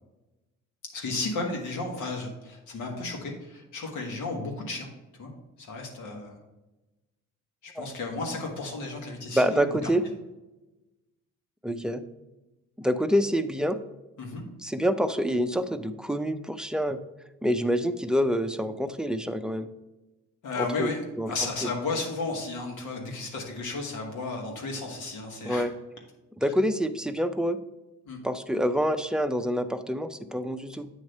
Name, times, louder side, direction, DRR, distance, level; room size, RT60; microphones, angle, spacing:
voice 1, 0.9-4.9 5.2-5.3 5.6-6.4 7.6-9.9 14.2-14.4 20.4-25.7 28.0-28.2, left 3 dB, 90° left, 1 dB, 1.7 m, -33 dB
voice 2, 9.3-10.0 11.6-12.0 12.8-13.8 14.6-17.0 17.4-19.7 20.6-20.9 21.2-21.3 21.6-21.7 25.4-25.7 26.4-27.6 28.2-30.9, equal, 5° right, 9 dB, 0.4 m, -27 dB
8.6 x 3.2 x 5.3 m, 1.0 s
cardioid pair, 90°, 30 cm